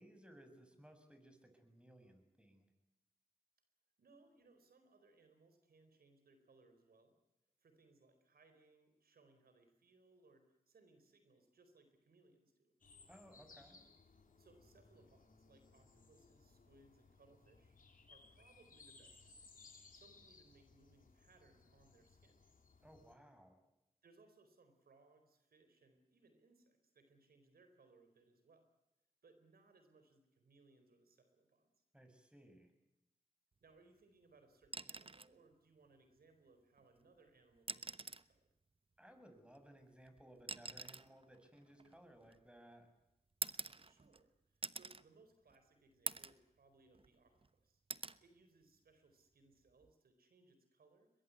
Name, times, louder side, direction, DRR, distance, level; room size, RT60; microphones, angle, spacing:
voice 1, 0.0-2.7 13.1-13.8 22.8-23.6 31.9-32.7 39.0-42.9, right 1 dB, 5° right, 6 dB, 7.3 m, -61 dB
voice 2, 4.0-7.2 7.6-12.7 14.4-17.8 18.1-19.5 19.9-22.4 24.0-28.7 29.2-31.7 33.6-38.5 43.8-47.8 48.2-51.1, right 3 dB, 85° right, 8 dB, 4.3 m, -68 dB
sound 1, 12.8-23.1, left 4 dB, 65° left, 3.8 m, -64 dB
sound 2, 34.6-35.4 36.8-36.9 37.6-38.3 39.5-42.6 43.4-44.2 44.6-45.0 45.5-45.6 46.1-46.4 46.9-47.5 47.9-48.2 49.7-49.9, right 3 dB, 35° right, 1.0 m, -46 dB
22.0 x 22.0 x 9.6 m, 0.90 s
cardioid pair, 50°, 15 cm